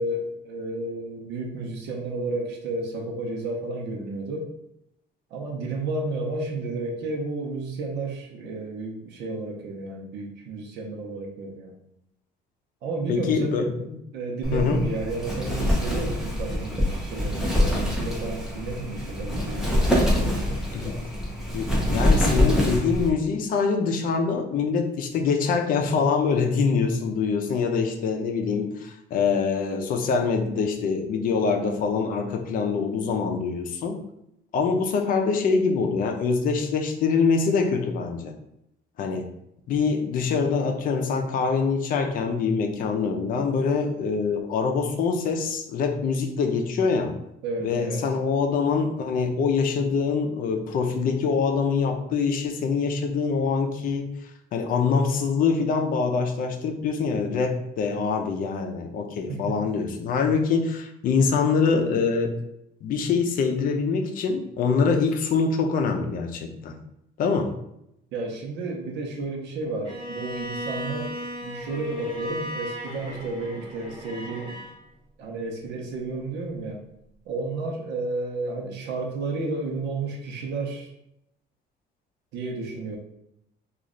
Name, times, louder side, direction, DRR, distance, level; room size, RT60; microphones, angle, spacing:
voice 1, 0.0-4.5 5.3-11.8 12.8-13.6 14.1-21.0 47.4-48.1 59.3-59.5 68.1-74.6 75.2-76.8 77.2-80.9 82.3-83.0, right 2 dB, 80° right, 0 dB, 0.8 m, -32 dB
voice 2, 13.1-13.9 14.5-14.8 20.7-20.9 21.5-34.0 34.5-38.3 39.0-39.3 39.7-47.2 47.6-54.1 54.5-62.3 62.8-66.8 67.2-67.5, left 5 dB, 55° left, 4 dB, 0.5 m, -24 dB
Wind, 14.4-23.1, left 1 dB, 5° right, 0.6 m, -25 dB
Bowed string instrument, 69.8-74.8, equal, 25° right, 0.9 m, -36 dB
3.1 x 2.4 x 3.7 m, 0.81 s
cardioid pair, 155°, 18 cm